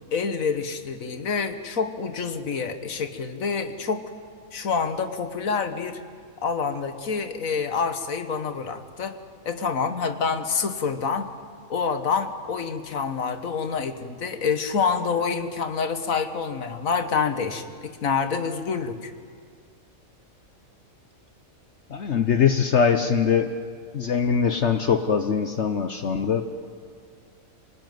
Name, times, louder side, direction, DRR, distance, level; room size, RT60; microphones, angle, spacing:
voice 1, 0.1-4.0 4.5-6.0 6.4-9.2 9.5-11.3 11.7-19.1, left 5 dB, 70° left, 9 dB, 1.8 m, -27 dB
voice 2, 21.9-23.5 23.9-26.5, left 6 dB, 55° left, 8 dB, 1.1 m, -22 dB
26.0 x 19.0 x 9.4 m, 2.1 s
omnidirectional pair, 1.5 m